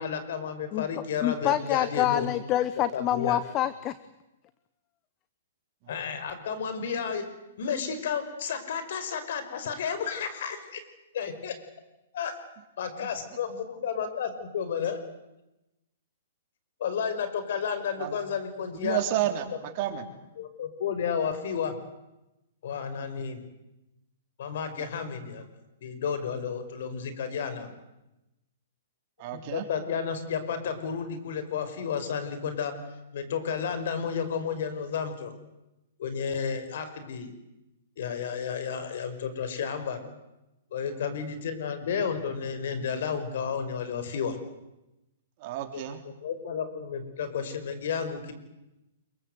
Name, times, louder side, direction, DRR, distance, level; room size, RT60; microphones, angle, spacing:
voice 1, 0.0-2.3 2.9-3.4 5.9-7.3 7.6-10.8 11.1-11.5 12.1-12.4 12.8-15.0 16.8-19.0 20.4-21.7 22.6-23.4 24.4-25.5 25.8-27.7 29.5-32.8 33.1-35.3 36.0-37.3 38.0-40.0 40.7-44.4 45.7-46.0 46.2-48.3, left 7 dB, 65° left, 10 dB, 5.4 m, -32 dB
voice 2, 1.2-3.9, left 12 dB, 30° left, 15 dB, 1.0 m, -26 dB
voice 3, 18.7-20.0 29.2-29.6 40.9-41.1 45.4-46.0, right 12 dB, 40° right, 5 dB, 3.9 m, -31 dB
26.5 x 23.5 x 8.1 m, 0.95 s
hypercardioid pair, 140°, 0 cm